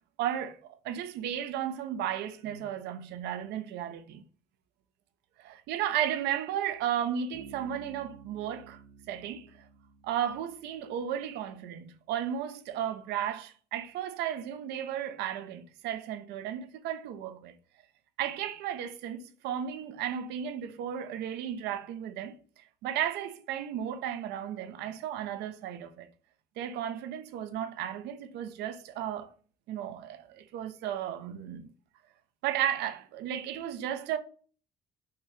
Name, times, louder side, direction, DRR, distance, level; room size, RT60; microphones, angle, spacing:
voice 1, 0.2-0.6 0.8-4.2 5.4-8.8 9.1-9.7 10.0-17.5 18.2-26.1 26.6-29.3 29.7-31.7 32.4-34.2, right 10 dB, 85° right, 0.6 m, -34 dB
Bass guitar, 7.3-11.0, right 7 dB, 60° right, 0.9 m, -52 dB
5.7 x 2.8 x 3.3 m
cardioid pair, 110°, 17 cm